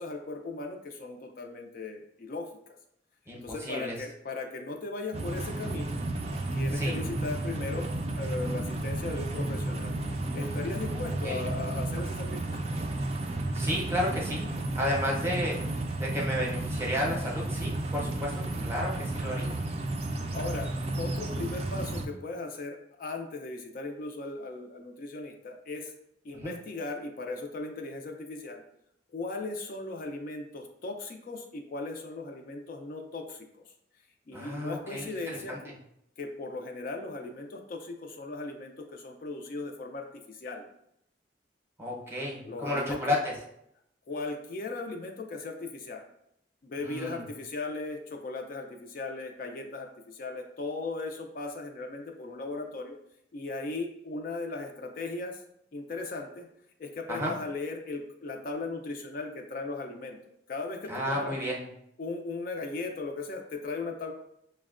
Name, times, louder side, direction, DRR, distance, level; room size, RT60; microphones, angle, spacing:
voice 1, 0.0-2.7 3.4-6.0 6.5-7.9 8.2-9.9 10.3-12.6 20.3-20.7 21.0-25.9 26.2-28.6 29.1-33.5 34.3-35.7 36.2-40.7 42.4-43.2 44.1-46.0 46.6-53.0 53.3-55.4 55.7-56.5 56.8-60.2 60.5-61.4 62.0-64.1, left 3 dB, 50° left, 3 dB, 0.3 m, -37 dB
voice 2, 3.3-4.0 6.7-7.0 10.9-11.5 13.5-15.6 16.0-19.5 26.3-26.5 34.3-35.1 35.5-35.6 41.8-43.4 46.8-47.2 57.1-57.4 60.9-61.6, left 1 dB, 15° right, -3 dB, 0.7 m, -32 dB
sound 1, 5.1-22.1, right 2 dB, 35° right, 0.3 m, -32 dB
5.9 x 2.1 x 2.4 m, 0.76 s
head